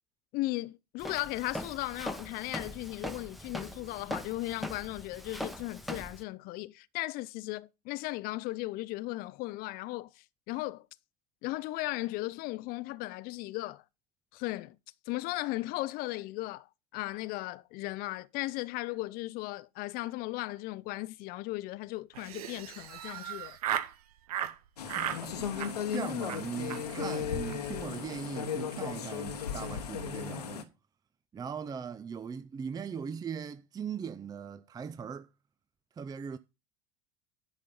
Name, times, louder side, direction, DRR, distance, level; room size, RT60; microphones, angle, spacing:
voice 1, 0.3-10.9 11.4-13.8 14.3-14.8 15.1-16.7 16.9-23.6, left 19 dB, 50° left, 0.5 m, -36 dB
Walk footsteps, 1.0-6.2, equal, ahead, 1.0 m, -41 dB
Laughter, 22.1-23.9 24.3-24.5 24.9-25.2 25.5-26.0 26.3-26.4 26.7-26.8 27.1-27.2 27.4-27.6 27.8-28.2, right 11 dB, 75° right, 0.8 m, -36 dB
sound 1, 24.8-30.6, left 7 dB, 85° left, 1.0 m, -36 dB
voice 2, 24.8-30.7 31.3-35.3 36.0-36.4, right 6 dB, 20° right, 0.5 m, -40 dB
10.5 x 4.3 x 5.2 m
hypercardioid pair, 70°, 20 cm